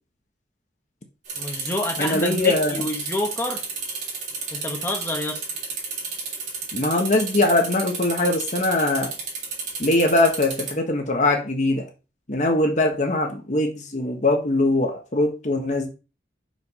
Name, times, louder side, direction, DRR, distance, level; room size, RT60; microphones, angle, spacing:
sound 1, 1.2-10.7, right 4 dB, 40° right, 2.8 m, -32 dB
voice 1, 1.4-3.6 4.5-5.4, left 1 dB, 15° left, 1.3 m, -28 dB
voice 2, 2.0-2.8 6.7-9.1 9.8-11.8 12.3-15.9, left 2 dB, 40° left, 1.3 m, -22 dB
5.8 x 5.2 x 5.5 m
head